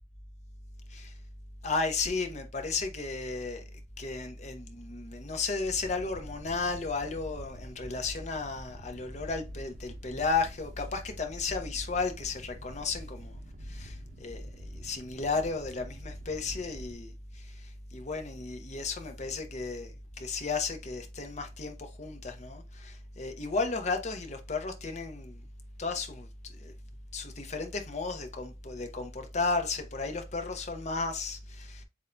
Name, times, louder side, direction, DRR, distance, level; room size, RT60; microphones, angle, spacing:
voice 1, 1.6-3.6 4.0-13.4 13.7-25.4 25.8-26.7 27.1-31.8, left 4 dB, 40° left, 0.8 m, -34 dB
sound 1, 5.6-17.0, equal, 50° right, 0.8 m, -47 dB
7.2 x 2.6 x 2.2 m
head